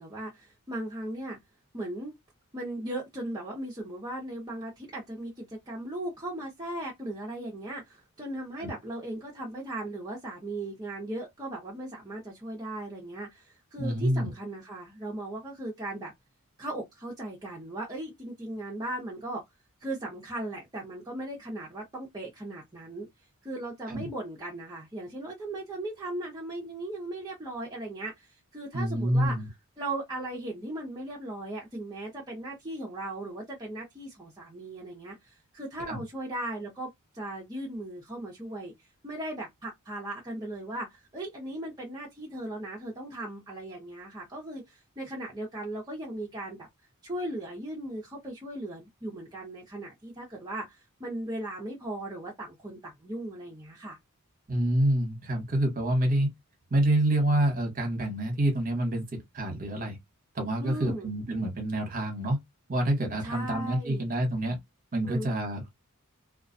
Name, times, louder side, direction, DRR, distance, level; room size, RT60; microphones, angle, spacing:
voice 1, 0.0-1.4 1.7-2.1 2.5-16.1 16.6-19.4 19.8-23.1 23.4-29.3 29.8-38.7 39.0-46.7 47.0-54.0 60.6-61.1 63.2-64.1 65.0-65.3, right 1 dB, 20° right, 0.7 m, -37 dB
voice 2, 13.8-14.3 23.9-24.1 28.7-29.5 35.9-36.0 54.5-56.3 56.7-59.0 59.3-60.0 60.3-62.4 62.7-64.6 64.9-65.7, right 1 dB, 40° right, 1.0 m, -27 dB
2.3 x 2.2 x 2.5 m
head